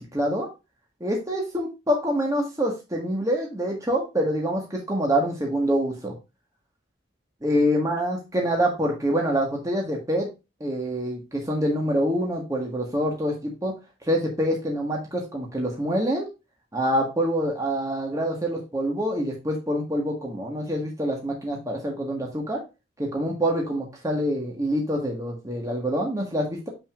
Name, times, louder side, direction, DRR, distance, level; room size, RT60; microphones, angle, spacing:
voice 1, 0.1-0.5 1.0-6.1 7.4-10.3 10.6-13.7 14.1-16.3 16.7-22.6 23.0-26.7, equal, 15° right, -1 dB, 1.5 m, -26 dB
6.8 x 6.1 x 2.4 m, 0.26 s
head